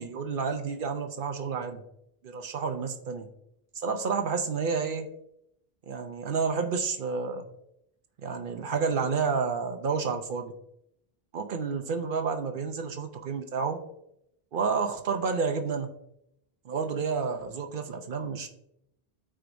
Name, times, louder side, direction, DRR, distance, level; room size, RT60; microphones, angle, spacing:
voice 1, 0.0-1.8 2.2-3.3 3.8-5.1 5.9-7.4 8.2-10.5 11.3-13.8 14.5-15.9 16.6-18.5, right 5 dB, 60° right, 6 dB, 0.8 m, -30 dB
12.0 x 4.7 x 2.6 m, 0.79 s
omnidirectional pair, 1.0 m